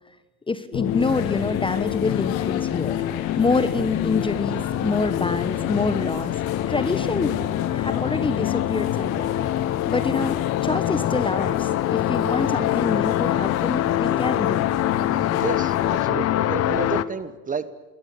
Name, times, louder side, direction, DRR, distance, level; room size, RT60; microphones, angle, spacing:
voice 1, 0.5-3.0 3.4-6.3 6.7-7.4 7.7-9.3 9.9-14.7, left 3 dB, 10° left, 13 dB, 1.2 m, -26 dB
sound 1, 0.7-17.0, left 12 dB, 35° left, 1.1 m, -25 dB
sound 2, 0.8-16.1, left 12 dB, 60° left, 2.5 m, -35 dB
voice 2, 15.4-17.7, right 5 dB, 15° right, 15 dB, 1.4 m, -31 dB
28.5 x 22.0 x 8.5 m, 1.1 s
hypercardioid pair, 95°, 45 cm